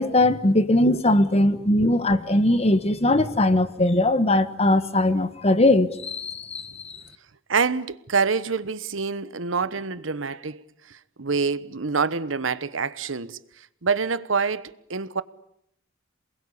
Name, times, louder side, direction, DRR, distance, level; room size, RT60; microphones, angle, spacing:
voice 1, 0.0-6.9, left 1 dB, 35° left, 1.4 m, -20 dB
voice 2, 1.5-1.9 7.5-15.2, right 5 dB, 85° right, 1.1 m, -27 dB
28.0 x 21.0 x 8.6 m
head